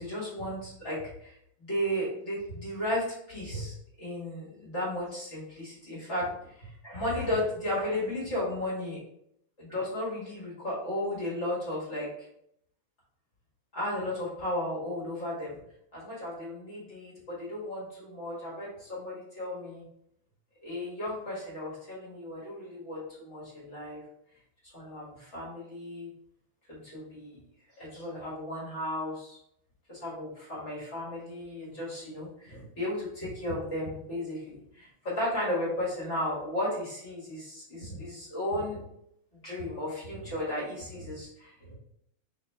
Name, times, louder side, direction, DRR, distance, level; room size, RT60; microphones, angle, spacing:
voice 1, 0.0-9.0 9.6-12.1 13.7-15.6 15.9-19.8 20.6-24.0 24.7-26.1 26.7-27.4 27.8-29.4 29.9-38.8 39.4-41.7, left 1 dB, 40° left, -6 dB, 1.1 m, -34 dB
4.0 x 3.5 x 3.2 m, 0.72 s
omnidirectional pair, 3.5 m